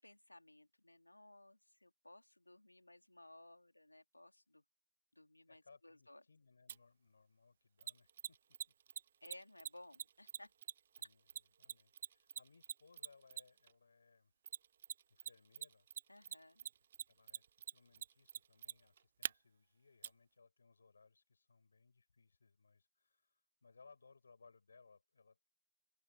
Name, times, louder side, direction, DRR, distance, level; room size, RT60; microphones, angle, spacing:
voice 1, 0.0-4.6 5.1-6.2 9.2-10.5 16.1-16.7, left 1 dB, 85° left, 2.7 m, -59 dB
voice 2, 5.5-8.6 11.0-14.3 15.1-15.9 16.3-16.4 17.1-25.4, left 4 dB, 65° left, 7.4 m, -67 dB
Mechanisms, 6.7-6.8 7.8-13.7 14.5-15.3 15.5-19.3 20.0-20.1, right 8 dB, 45° right, 0.6 m, -44 dB
open air
figure-of-eight pair, 135°, 0 cm